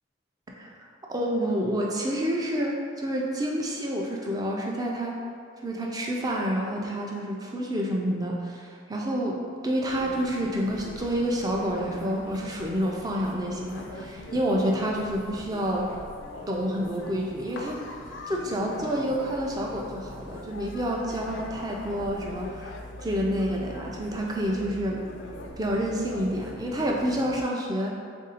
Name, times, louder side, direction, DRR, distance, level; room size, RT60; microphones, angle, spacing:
voice 1, 0.5-0.8 1.1-5.2 5.6-16.0 16.5-17.8 18.3-25.0 25.6-28.0, equal, 20° right, -1 dB, 0.4 m, -28 dB
sound 1, 9.9-27.4, left 2 dB, 70° left, 0.4 m, -42 dB
3.6 x 2.6 x 4.0 m, 2.2 s
head